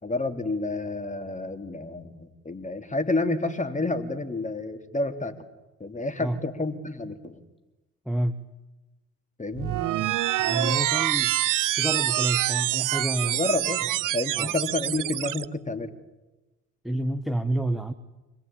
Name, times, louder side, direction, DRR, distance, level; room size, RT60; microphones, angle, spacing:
voice 1, 0.0-5.4 5.8-7.4 9.4-9.8 13.3-13.9 14.1-15.9, left 2 dB, 15° left, 7 dB, 3.1 m, -29 dB
voice 2, 8.0-8.4 10.4-11.3 11.8-13.4 14.4-14.5 16.8-17.9, right 1 dB, ahead, 9 dB, 1.5 m, -28 dB
sound 1, 9.5-15.5, right 15 dB, 50° right, 0.8 m, -26 dB
25.0 x 20.0 x 8.8 m, 1.1 s
hypercardioid pair, 55°, 42 cm